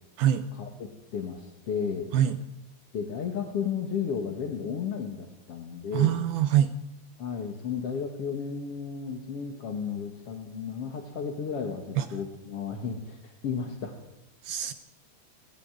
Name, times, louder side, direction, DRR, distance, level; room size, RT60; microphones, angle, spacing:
voice 1, 0.5-2.1 2.9-6.2 7.2-13.9, left 6 dB, 50° left, 4 dB, 2.0 m, -33 dB
voice 2, 5.9-6.7 12.0-12.1 14.4-14.7, right 11 dB, 75° right, 9 dB, 2.5 m, -24 dB
20.0 x 15.5 x 9.2 m, 0.94 s
omnidirectional pair, 5.0 m